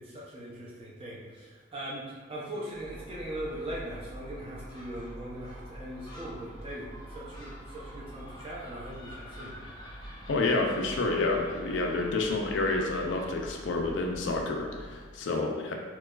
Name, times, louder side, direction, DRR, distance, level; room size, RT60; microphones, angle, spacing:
voice 1, 0.0-9.5, right 1 dB, 30° right, -5 dB, 0.5 m, -40 dB
Gull seagull, 2.7-15.1, equal, 20° left, 0.5 m, -45 dB
voice 2, 10.3-15.7, left 2 dB, 75° left, 2 dB, 0.4 m, -29 dB
4.5 x 2.3 x 2.3 m, 1.4 s
head